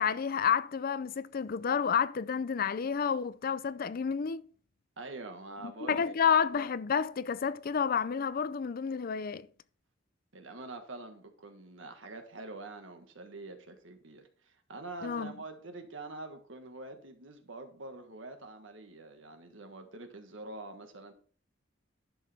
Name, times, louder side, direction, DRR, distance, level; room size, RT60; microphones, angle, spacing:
voice 1, 0.0-4.5 5.6-9.5 15.0-15.3, left 7 dB, 50° left, 0.4 m, -30 dB
voice 2, 5.0-6.2 10.3-21.1, right 2 dB, 85° right, 1.6 m, -45 dB
11.0 x 6.6 x 3.5 m
head